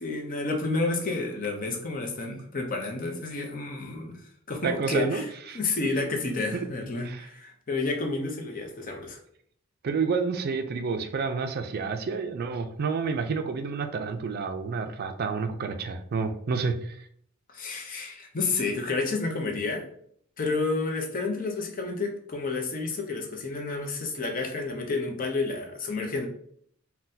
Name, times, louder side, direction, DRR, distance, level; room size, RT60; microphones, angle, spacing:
voice 1, 0.0-4.2 4.5-9.2 17.5-19.9 20.4-26.3, left 3 dB, 45° left, 2 dB, 0.7 m, -30 dB
voice 2, 4.6-5.6 6.5-6.6 7.0-7.2 9.8-17.0, right 5 dB, 50° right, 7 dB, 0.4 m, -29 dB
3.9 x 2.2 x 2.6 m, 0.64 s
head